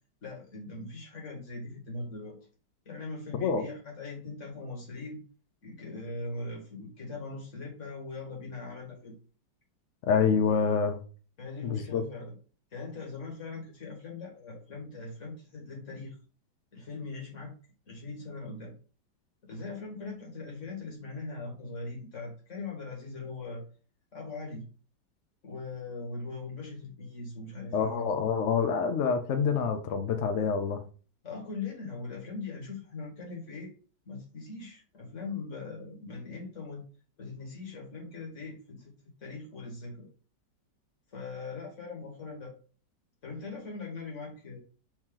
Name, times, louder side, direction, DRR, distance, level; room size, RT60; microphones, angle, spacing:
voice 1, 0.2-2.4 2.9-5.2 5.6-9.2 11.4-12.4 12.7-16.2 16.7-17.5 17.9-18.7 19.4-23.6 24.1-24.6 25.4-28.1 31.2-33.7 34.1-36.8 37.2-40.1 41.1-42.5 43.2-44.6, left 3 dB, 45° left, -1 dB, 1.8 m, -40 dB
voice 2, 10.1-11.0 11.6-12.0 27.7-30.8, left 6 dB, 80° left, 7 dB, 0.6 m, -27 dB
4.6 x 2.9 x 3.6 m, 0.38 s
omnidirectional pair, 1.9 m